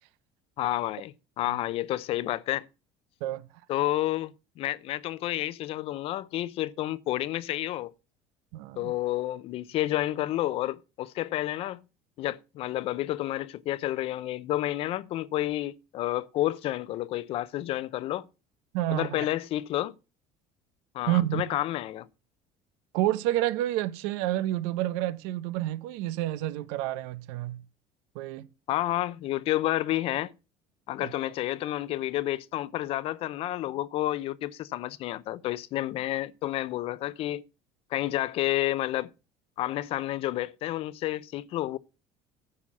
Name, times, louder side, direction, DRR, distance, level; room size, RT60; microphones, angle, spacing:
voice 1, 0.6-2.7 3.7-7.9 8.8-11.8 12.2-18.3 18.9-19.9 20.9-22.1 28.7-30.3 30.9-37.4 37.9-39.1 39.6-41.8, left 15 dB, 45° left, 0.6 m, -30 dB
voice 2, 8.5-8.9 18.7-19.3 21.1-21.5 22.9-27.6 28.1-28.5 31.0-31.1, right 14 dB, 90° right, 0.8 m, -29 dB
9.7 x 5.7 x 7.2 m
cardioid pair, 160°, 13 cm